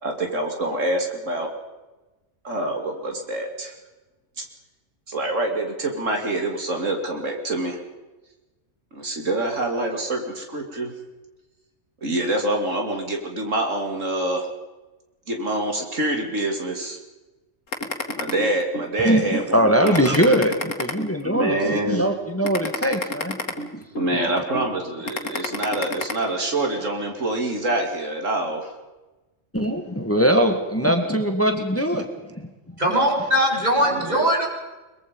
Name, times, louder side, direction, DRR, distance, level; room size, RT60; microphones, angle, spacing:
voice 1, 0.0-1.5 2.4-3.7 4.4-4.5 5.1-7.8 8.9-10.9 12.0-14.5 15.3-17.0 18.1-20.3 21.2-22.0 24.0-28.7 33.9-34.2, right 1 dB, 80° right, 3 dB, 3.3 m, -26 dB
sound 1, 17.7-18.9 19.3-19.5 19.8-21.5 21.9-22.1 22.4-24.1 24.5-24.7 25.1-26.1, left 2 dB, 85° left, 2.5 m, -29 dB
voice 2, 19.0-23.4 23.7-23.8 29.5-32.5, equal, 10° left, 5 dB, 1.9 m, -21 dB
voice 3, 32.8-34.5, equal, 35° right, 0 dB, 4.9 m, -20 dB
23.0 x 22.5 x 5.4 m, 1.1 s
omnidirectional pair, 1.3 m